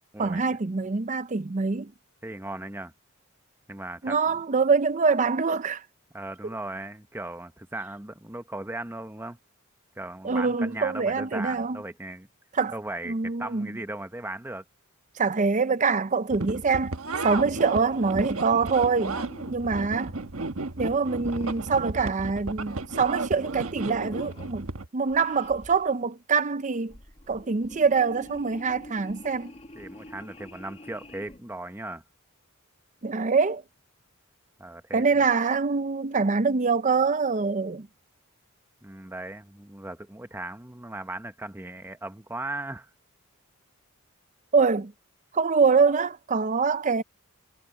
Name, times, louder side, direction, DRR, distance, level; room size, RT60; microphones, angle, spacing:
voice 1, 0.2-1.9 4.0-5.8 10.2-11.8 12.5-12.7 13.1-13.7 15.2-17.0 17.2-19.2 19.5-20.1 20.8-24.7 24.9-27.0 27.3-29.5 33.0-33.6 34.9-37.9 44.5-44.9 45.3-47.0, right 4 dB, 35° right, 0.5 m, -24 dB
voice 2, 2.2-2.9 3.7-4.2 6.1-9.4 10.0-12.3 12.7-14.6 29.7-32.0 34.6-35.2 38.8-42.9, right 2 dB, 10° right, 0.9 m, -37 dB
sound 1, 16.3-24.9, right 3 dB, 85° right, 1.4 m, -33 dB
sound 2, 17.2-21.8 22.3-23.4 23.7-24.5 25.0-26.0 26.7-31.4, left 1 dB, 30° left, 2.0 m, -48 dB
head